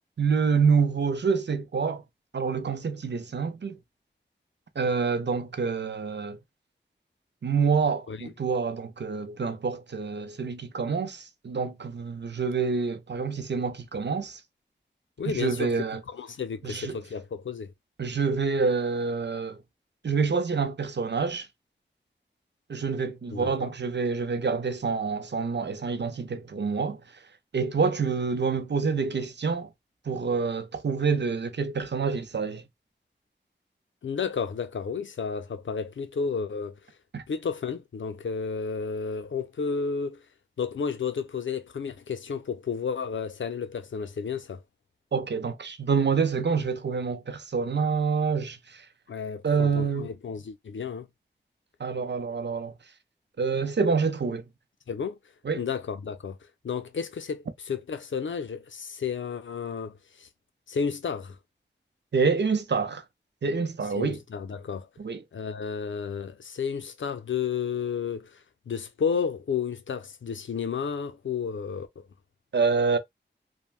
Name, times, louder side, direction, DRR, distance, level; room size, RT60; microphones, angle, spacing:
voice 1, 0.2-2.0 2.3-3.8 4.8-6.4 7.4-14.4 15.3-16.0 16.6-17.0 18.0-19.6 20.0-21.5 22.7-27.0 27.5-29.7 30.1-32.6 37.1-37.2 45.1-48.9 49.4-50.1 51.8-52.7 53.4-54.4 55.4-55.6 62.1-63.0 63.4-64.2 65.0-65.2 72.5-73.0, right 5 dB, 65° right, 0.6 m, -27 dB
voice 2, 15.2-15.7 16.1-17.7 23.3-23.7 34.0-36.8 37.3-40.2 40.6-44.6 49.1-51.1 54.9-55.2 55.6-56.4 56.6-60.3 60.7-61.4 63.9-64.9 65.3-72.1, left 6 dB, 85° left, 0.5 m, -32 dB
3.3 x 2.1 x 2.3 m
wide cardioid pair, 45°, 19 cm